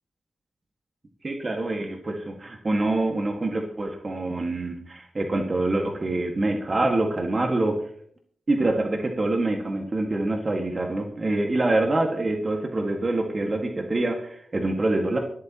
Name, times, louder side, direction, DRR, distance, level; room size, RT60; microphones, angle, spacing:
voice 1, 1.2-7.8 8.5-15.2, right 2 dB, 45° right, 2 dB, 1.9 m, -25 dB
22.5 x 8.4 x 3.1 m, 0.62 s
cardioid pair, 45°, 0 cm